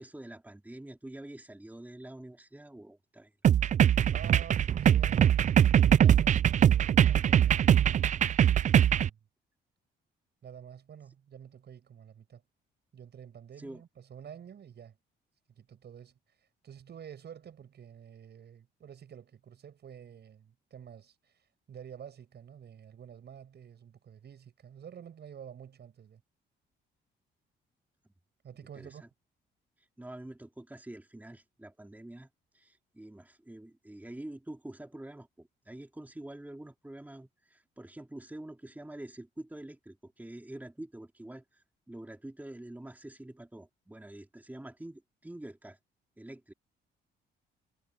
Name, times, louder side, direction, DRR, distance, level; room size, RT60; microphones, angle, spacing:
voice 1, 0.0-3.3 3.6-3.7 13.6-13.8 28.0-28.1 28.7-29.1 29.8-32.3 32.5-45.8 46.2-46.5, right 1 dB, 10° right, 2.8 m, -46 dB
sound 1, 3.4-9.1, right 10 dB, 40° right, 0.4 m, -22 dB
voice 2, 4.1-5.5 5.8-7.7 8.7-9.2 10.4-12.4 12.9-15.0 15.5-16.2 16.6-21.3 21.7-26.2 28.4-29.0, right 8 dB, 55° right, 6.7 m, -49 dB
cardioid pair, 90°, 20 cm